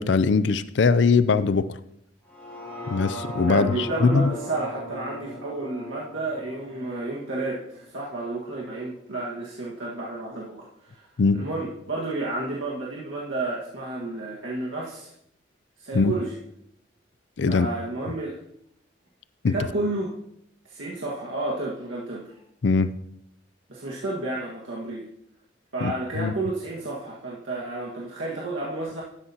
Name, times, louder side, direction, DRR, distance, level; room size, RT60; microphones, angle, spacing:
voice 1, 0.0-1.7 2.9-4.3 11.2-11.4 15.9-16.1 17.4-17.7 19.4-19.5 22.6-22.9 25.8-26.3, left 4 dB, 70° left, 14 dB, 0.4 m, -21 dB
sound 1, 2.3-8.4 8.8-8.9, equal, 5° left, 2.3 m, -39 dB
voice 2, 3.5-11.1 11.3-15.1 15.8-16.3 17.5-18.4 19.4-20.1 20.6-22.3 23.7-25.0 25.7-29.0, right 2 dB, 90° right, -5 dB, 1.7 m, -31 dB
12.5 x 9.9 x 2.9 m, 0.75 s
head